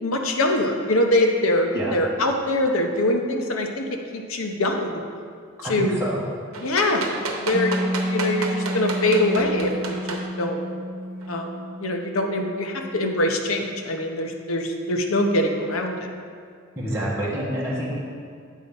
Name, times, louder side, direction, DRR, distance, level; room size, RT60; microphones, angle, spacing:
voice 1, 0.0-3.8 4.1-5.0 5.7-5.9 6.6-7.1 7.4-10.6 11.3-11.5 11.8-16.1, left 1 dB, 75° left, 3 dB, 0.8 m, -23 dB
voice 2, 5.6-6.2 16.7-18.0, right 1 dB, 15° right, -8 dB, 1.3 m, -27 dB
sound 1, 6.5-10.2 11.2-11.3, right 3 dB, 90° right, 0.9 m, -30 dB
Piano, 7.5-14.8, equal, 5° left, 0.5 m, -32 dB
8.3 x 4.1 x 5.3 m, 2.2 s
head